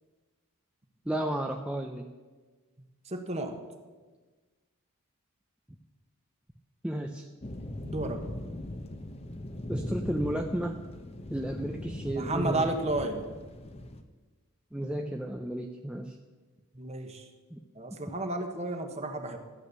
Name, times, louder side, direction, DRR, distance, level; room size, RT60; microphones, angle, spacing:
voice 1, 1.1-2.1 6.8-7.3 9.6-10.8 11.3-12.7 14.7-16.2 17.5-17.6, right 1 dB, 5° right, 2 dB, 0.5 m, -33 dB
voice 2, 3.0-3.6 7.8-8.2 12.1-13.2 16.7-17.3 17.7-19.4, right 2 dB, 30° right, 6 dB, 1.2 m, -32 dB
sound 1, 7.4-14.0, left 1 dB, 30° left, 0.8 m, -40 dB
13.5 x 8.7 x 6.7 m, 1.3 s
head